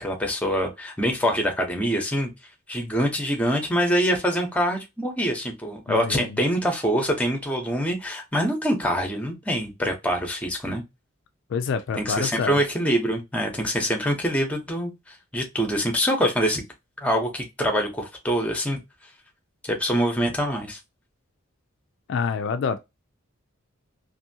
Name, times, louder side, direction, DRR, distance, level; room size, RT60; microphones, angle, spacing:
voice 1, 0.0-2.3 2.7-10.8 12.0-16.6 17.0-18.8 19.7-20.8, equal, 5° left, 0.7 m, -25 dB
voice 2, 5.9-6.4 11.5-12.6 22.1-22.8, left 5 dB, 60° left, 0.3 m, -27 dB
2.7 x 2.6 x 2.7 m
head